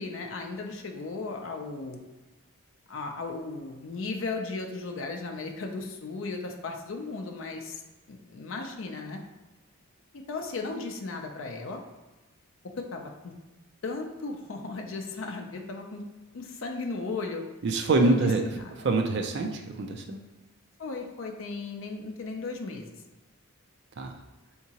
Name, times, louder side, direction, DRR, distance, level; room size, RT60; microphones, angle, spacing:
voice 1, 0.0-2.0 2.9-7.8 8.1-9.2 10.1-11.8 12.8-13.3 13.8-16.0 16.3-17.4 18.0-18.7 20.8-22.9, left 3 dB, 60° left, 3 dB, 0.4 m, -36 dB
voice 2, 17.6-18.4 18.8-20.2 24.0-24.1, right 3 dB, 50° right, 3 dB, 0.4 m, -25 dB
3.5 x 2.9 x 2.8 m, 1.2 s
head